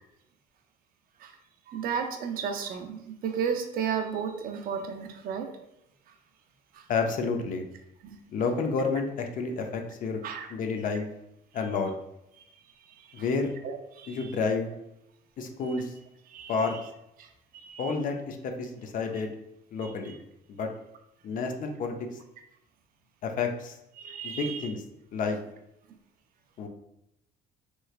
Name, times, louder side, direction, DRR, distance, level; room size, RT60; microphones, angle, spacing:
voice 1, 1.7-5.5 6.7-6.8 8.0-8.2 10.2-10.5 13.0-13.2 13.6-14.3 15.7-15.8 16.3-16.7 17.2-17.3 17.5-17.9 19.8-19.9 24.0-24.7, right 7 dB, 60° right, 5 dB, 0.5 m, -34 dB
voice 2, 6.9-7.7 8.3-10.2 10.5-11.1 11.5-11.9 13.1-13.5 14.1-14.7 15.4-15.9 16.5-16.8 17.8-19.3 19.7-20.1 20.5-20.7 21.2-21.9 23.2-23.7 24.2-24.8 25.1-25.4 26.6-26.7, left 4 dB, 55° left, 4 dB, 0.5 m, -30 dB
3.1 x 3.1 x 2.4 m, 0.84 s
cardioid pair, 110°, 17 cm